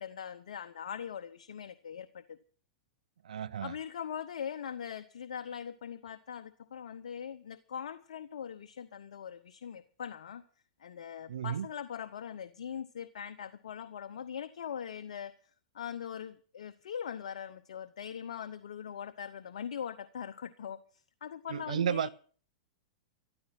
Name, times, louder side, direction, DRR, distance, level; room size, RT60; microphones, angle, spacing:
voice 1, 0.0-2.4 3.6-10.4 10.8-15.4 15.7-20.8 21.2-22.1, left 8 dB, 80° left, 0.9 m, -41 dB
voice 2, 3.2-3.7 11.3-11.7 21.5-22.1, right 9 dB, 85° right, 0.6 m, -33 dB
14.0 x 12.5 x 5.9 m
hypercardioid pair, 120°, 4 cm